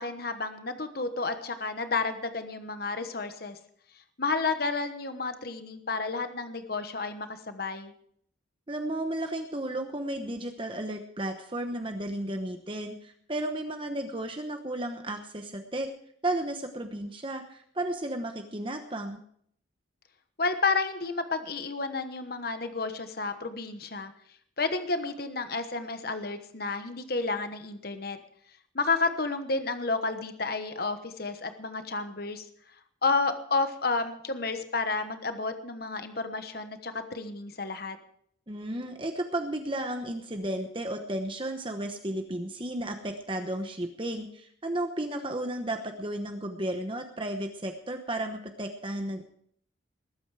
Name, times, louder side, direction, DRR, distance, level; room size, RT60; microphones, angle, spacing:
voice 1, 0.0-3.6 4.2-7.9 20.4-24.1 24.6-28.2 28.7-32.4 33.0-38.0, left 3 dB, 50° left, 9 dB, 1.2 m, -31 dB
voice 2, 8.7-15.9 16.2-19.2 38.5-49.2, right 1 dB, 25° right, 5 dB, 1.0 m, -33 dB
20.0 x 9.1 x 4.9 m, 0.64 s
head